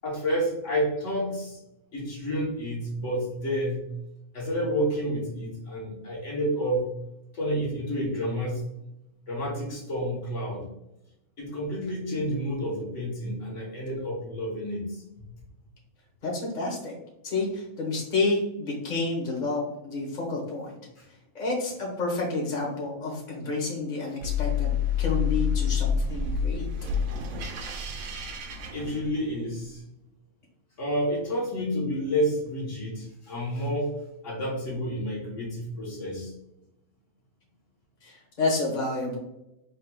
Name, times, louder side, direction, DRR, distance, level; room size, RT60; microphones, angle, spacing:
voice 1, 0.0-1.6 1.9-3.9 4.3-6.9 7.3-8.6 9.3-10.7 11.4-15.0 21.0-21.1 28.7-29.8 30.8-33.9 34.2-36.3, equal, 60° left, -3 dB, 1.5 m, -29 dB
voice 2, 16.2-17.0 17.2-20.8 21.3-24.7 25.0-26.6 38.0-39.2, left 3 dB, 35° left, -2 dB, 1.3 m, -29 dB
sound 1, 24.2-29.5, left 6 dB, 80° right, 1.1 m, -28 dB
4.2 x 3.8 x 2.3 m, 0.87 s
omnidirectional pair, 1.4 m